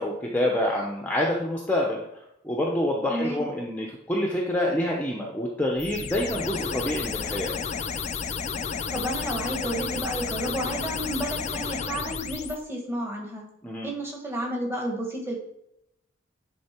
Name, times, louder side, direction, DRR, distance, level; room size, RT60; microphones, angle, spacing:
voice 1, 0.0-2.0 2.4-7.5 13.6-13.9, left 1 dB, 10° left, -1 dB, 0.8 m, -27 dB
voice 2, 3.1-3.5 8.9-13.4 13.8-15.4, right 1 dB, 10° right, 0 dB, 1.6 m, -31 dB
sound 1, 5.8-12.6, left 6 dB, 35° left, 0.4 m, -32 dB
10.0 x 3.9 x 4.4 m, 0.80 s
head